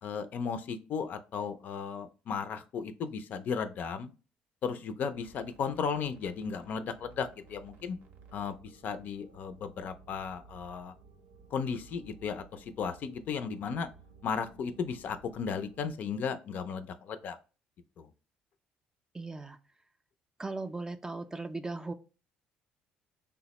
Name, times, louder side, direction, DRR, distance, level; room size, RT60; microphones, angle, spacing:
voice 1, 0.0-4.1 4.6-8.0 8.3-10.9 11.5-13.9 14.2-17.4 18.0-18.1, left 6 dB, 60° left, 9 dB, 0.4 m, -35 dB
sound 1, 5.1-15.9, right 4 dB, 70° right, 0.6 m, -57 dB
voice 2, 19.1-19.6 20.4-21.9, right 3 dB, 20° right, 8 dB, 0.4 m, -37 dB
3.4 x 2.1 x 2.9 m, 0.33 s
supercardioid pair, 70°, 3 cm